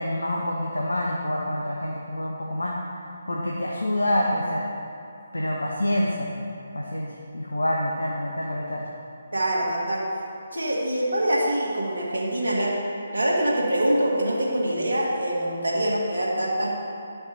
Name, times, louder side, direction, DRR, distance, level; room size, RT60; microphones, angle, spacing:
voice 1, 0.0-2.8 3.3-4.6 5.3-6.3 6.7-7.1 7.3-8.9, left 1 dB, 80° left, -2 dB, 0.9 m, -26 dB
voice 2, 9.3-10.0 10.5-12.8 13.1-16.7, right 1 dB, 75° right, -4 dB, 2.0 m, -24 dB
10.5 x 5.8 x 4.0 m, 2.6 s
figure-of-eight pair, 145°, 0 cm